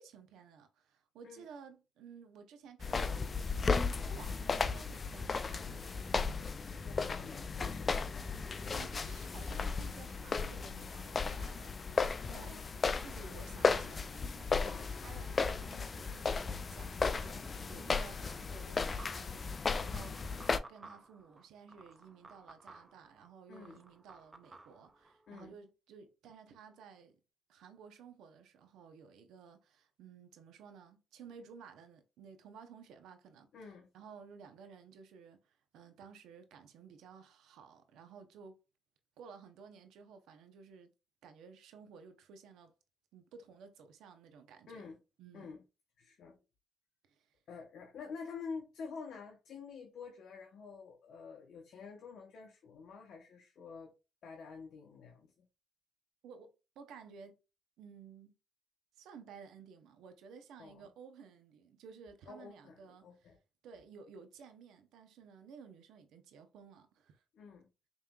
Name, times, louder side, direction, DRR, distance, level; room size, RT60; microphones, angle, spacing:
voice 1, 0.0-6.0 8.6-11.8 12.3-27.2 27.5-33.5 33.9-38.6 39.2-40.9 41.2-42.7 43.1-44.9 45.2-45.5 47.1-47.3 56.2-57.4 57.8-58.3 59.0-63.3 63.6-67.2, right 6 dB, 85° right, 0.8 m, -55 dB
sound 1, 2.8-20.6, left 4 dB, 35° left, 0.4 m, -35 dB
voice 2, 6.8-8.4 12.3-12.7 14.6-14.9 23.5-23.8 25.3-25.5 33.5-33.9 44.7-45.0 45.3-45.6 46.0-46.4 47.5-53.9 54.2-55.5 60.6-60.9 62.3-63.4 67.3-67.7, left 5 dB, 70° left, 0.9 m, -48 dB
sound 2, 18.8-25.4, right 3 dB, 25° right, 0.6 m, -56 dB
5.3 x 3.0 x 2.3 m
cardioid pair, 90°, 0 cm